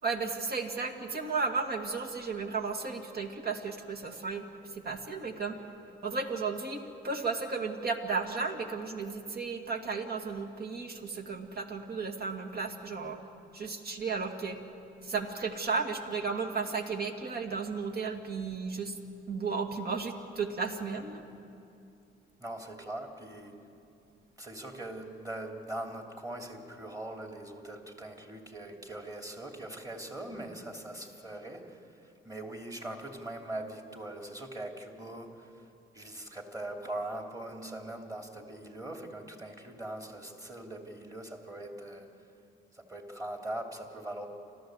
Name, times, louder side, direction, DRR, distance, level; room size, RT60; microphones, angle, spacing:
voice 1, 0.0-4.4 4.7-5.6 6.0-13.2 13.5-14.6 15.0-19.0 19.3-21.2, right 4 dB, 50° right, 3 dB, 2.1 m, -34 dB
voice 2, 22.4-23.6 24.4-35.5 35.9-42.1 42.7-44.3, right 1 dB, 20° right, 2 dB, 3.1 m, -41 dB
29.0 x 13.0 x 8.0 m, 2.6 s
cardioid pair, 90°, 20 cm